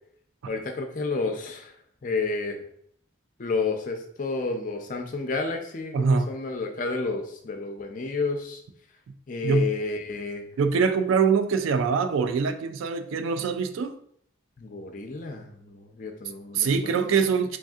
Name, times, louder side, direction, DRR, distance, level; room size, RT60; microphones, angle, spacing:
voice 1, 0.5-1.7 2.0-2.6 3.4-8.6 9.3-10.5 14.6-17.1, left 3 dB, 40° left, 0.4 m, -31 dB
voice 2, 5.9-6.3 9.4-9.7 10.6-14.0 16.5-17.6, right 5 dB, 85° right, 0.3 m, -23 dB
3.3 x 2.6 x 2.3 m
head